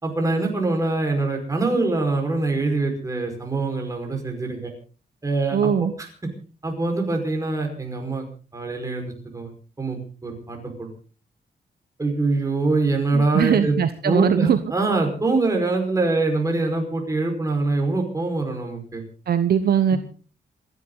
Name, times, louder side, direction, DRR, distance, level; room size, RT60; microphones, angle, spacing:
voice 1, 0.0-4.7 5.2-6.1 6.6-8.3 8.5-9.5 9.8-10.9 12.0-13.8 14.0-19.0 19.9-20.0, right 3 dB, 20° right, 2 dB, 5.2 m, -24 dB
voice 2, 5.5-5.9 13.1-14.6 19.3-20.0, right 8 dB, 70° right, 10 dB, 1.1 m, -20 dB
28.0 x 11.0 x 4.0 m, 0.38 s
wide cardioid pair, 150°, 17 cm